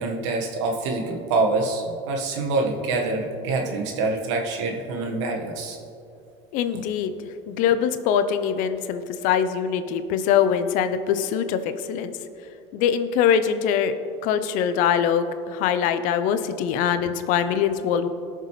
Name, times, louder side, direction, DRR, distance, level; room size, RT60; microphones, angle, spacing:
voice 1, 0.0-5.8 6.7-6.8, right 3 dB, 80° right, 1 dB, 1.5 m, -26 dB
voice 2, 6.5-7.1 7.5-12.2 12.7-13.9 14.2-18.1, left 8 dB, 60° left, 11 dB, 0.7 m, -23 dB
18.0 x 6.7 x 3.2 m, 2.6 s
supercardioid pair, 110°, 15 cm